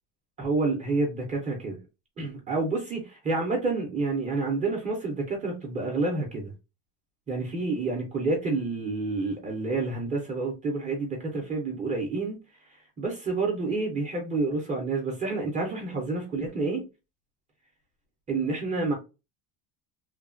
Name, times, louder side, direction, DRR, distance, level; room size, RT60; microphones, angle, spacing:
voice 1, 0.4-1.8 2.2-6.5 7.3-12.4 13.0-16.8 18.3-18.9, right 3 dB, 20° right, 0.5 m, -29 dB
3.1 x 2.1 x 2.4 m
cardioid pair, 180°, 41 cm